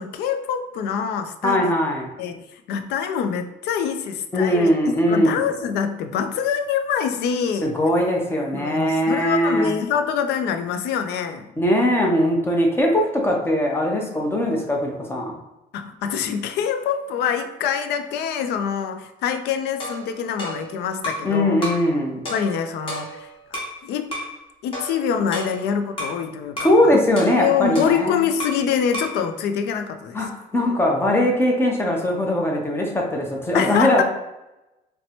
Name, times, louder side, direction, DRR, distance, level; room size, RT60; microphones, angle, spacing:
voice 1, 0.0-1.7 2.2-7.7 8.5-11.5 15.7-21.6 22.3-24.1 24.6-27.0 27.4-30.2 33.5-34.0, left 7 dB, 75° left, 8 dB, 0.4 m, -25 dB
voice 2, 1.4-2.1 4.3-5.4 7.6-9.7 11.6-15.3 21.2-22.2 26.6-28.2 30.1-34.0, left 1 dB, 15° left, 0 dB, 0.7 m, -20 dB
sound 1, 19.8-21.3 21.6-21.9 22.3-23.8 24.1-24.4 24.7-26.2 26.6-26.8 27.2-28.7 28.9-29.2, equal, 30° left, 1.2 m, -32 dB
4.1 x 2.1 x 2.9 m, 0.95 s
cardioid pair, 110°, 17 cm